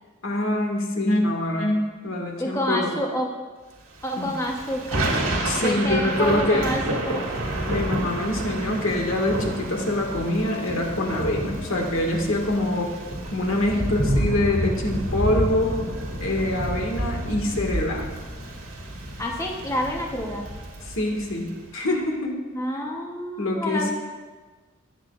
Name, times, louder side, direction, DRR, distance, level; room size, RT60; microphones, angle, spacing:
voice 1, 0.2-2.9 4.2-4.4 5.4-6.7 7.7-12.9 13.3-15.8 16.2-18.1 20.9-22.4 23.4-23.9, left 1 dB, 75° left, 1 dB, 1.8 m, -25 dB
voice 2, 2.4-3.3 4.0-5.1 5.6-7.2 19.2-20.5 22.5-23.9, equal, 15° left, 0 dB, 0.9 m, -28 dB
Thunder / Rain, 4.0-21.5, right 1 dB, 80° right, 1.9 m, -29 dB
18.0 x 8.1 x 2.4 m, 1.3 s
head